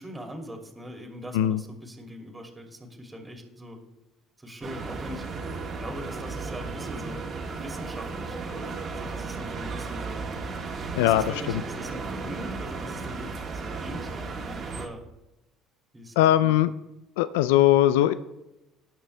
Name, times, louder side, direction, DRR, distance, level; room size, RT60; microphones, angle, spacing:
voice 1, 0.0-3.8 4.4-10.3 10.9-15.0 15.9-16.5, equal, 15° right, 2 dB, 2.5 m, -42 dB
sound 1, 4.6-14.9, right 4 dB, 45° right, 1.9 m, -35 dB
voice 2, 10.9-11.6 16.2-16.7 17.2-18.1, left 13 dB, 90° left, 14 dB, 0.4 m, -20 dB
18.0 x 6.0 x 3.4 m, 0.96 s
supercardioid pair, 85°, 0 cm